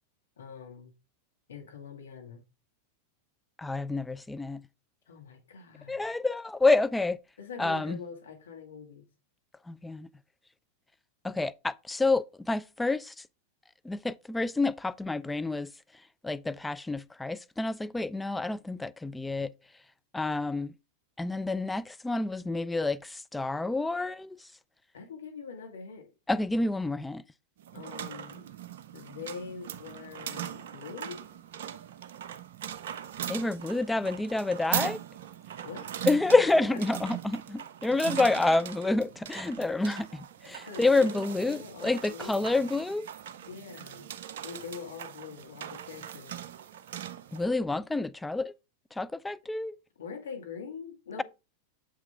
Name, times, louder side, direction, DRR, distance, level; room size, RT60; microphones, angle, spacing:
voice 1, 0.4-0.9 1.5-2.4 5.1-6.2 7.4-9.1 24.9-26.1 27.7-28.4 28.9-31.2 35.6-36.1 40.7-42.6 43.4-44.1 44.4-46.4 50.0-51.2, left 6 dB, 65° left, 1.8 m, -43 dB
voice 2, 3.6-4.6 5.9-7.2 7.6-8.0 9.7-10.1 11.2-13.1 13.8-15.7 16.2-19.5 20.1-20.7 21.2-24.4 26.3-27.2 33.3-35.0 36.1-43.1 47.3-48.5 49.0-49.8, left 3 dB, 5° left, 0.3 m, -28 dB
sound 1, 27.6-47.5, right 10 dB, 55° right, 0.5 m, -40 dB
7.4 x 5.8 x 3.5 m
figure-of-eight pair, 90°, 0 cm